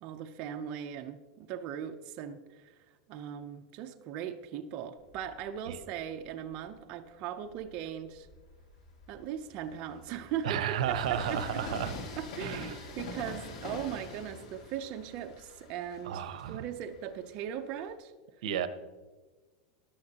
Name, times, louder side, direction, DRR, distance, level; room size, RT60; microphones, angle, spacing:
voice 1, 0.0-2.7 3.1-8.3 9.1-10.6 10.9-11.4 12.2-18.1, right 9 dB, 35° right, 5 dB, 0.6 m, -39 dB
Train, 5.0-6.7 7.3-17.9, left 2 dB, 75° left, 2.3 m, -45 dB
voice 2, 10.4-11.9 12.4-12.8 16.0-16.6 18.4-18.7, right 9 dB, 80° right, 12 dB, 0.8 m, -32 dB
15.0 x 10.5 x 2.9 m, 1.3 s
supercardioid pair, 165°, 4 cm